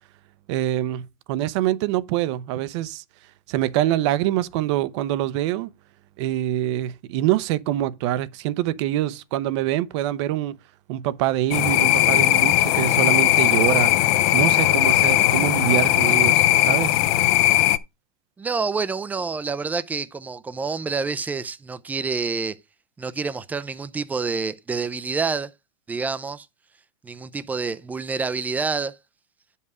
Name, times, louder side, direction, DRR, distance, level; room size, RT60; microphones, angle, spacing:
voice 1, 0.5-3.0 3.5-5.7 6.2-10.6 10.9-13.9 14.3-17.0, right 13 dB, 50° right, 0.7 m, -25 dB
sound 1, 11.5-17.8, left 15 dB, 45° left, 0.6 m, -18 dB
voice 2, 18.4-22.6 23.0-25.5 25.9-26.5 27.0-28.9, right 4 dB, 10° right, 0.4 m, -27 dB
9.3 x 5.5 x 4.8 m
supercardioid pair, 155°, 18 cm